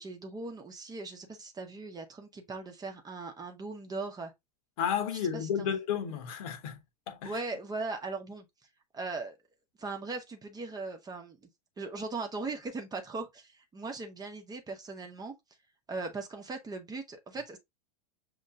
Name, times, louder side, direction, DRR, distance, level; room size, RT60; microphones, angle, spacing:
voice 1, 0.0-4.3 5.1-5.7 7.2-8.5 8.9-9.4 9.8-11.5 11.8-15.3 15.9-17.6, right 3 dB, 20° right, 1.0 m, -39 dB
voice 2, 4.8-7.4, left 8 dB, 55° left, 1.3 m, -32 dB
6.4 x 3.0 x 2.5 m
figure-of-eight pair, 90°, 21 cm